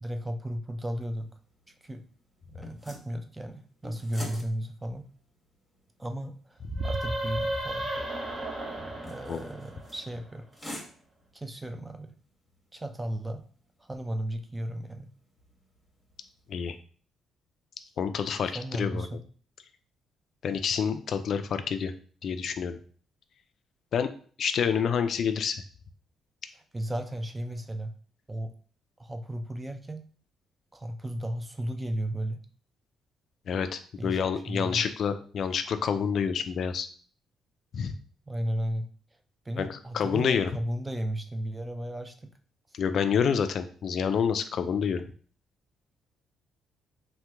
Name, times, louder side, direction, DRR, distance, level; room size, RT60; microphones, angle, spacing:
voice 1, 0.0-1.3 1.7-2.0 2.5-5.1 6.0-7.9 9.1-10.5 11.3-12.1 12.7-13.4 13.8-15.1 18.5-19.2 26.7-27.9 28.3-28.5 29.0-30.0 30.7-32.4 34.0-34.2 34.5-34.8 38.3-38.9 39.5-42.3, right 1 dB, 15° right, 7 dB, 0.4 m, -34 dB
sound 1, 0.9-16.7, left 1 dB, 5° left, 1.1 m, -50 dB
sound 2, 6.6-10.2, right 1 dB, 40° right, 0.8 m, -33 dB
voice 2, 18.0-19.1 20.4-21.9 22.2-22.8 23.9-24.1 24.4-25.6 33.5-36.9 37.7-37.9 39.6-40.5 42.7-45.1, left 7 dB, 60° left, 9 dB, 0.3 m, -28 dB
2.9 x 2.2 x 3.3 m, 0.43 s
cardioid pair, 90°, 0 cm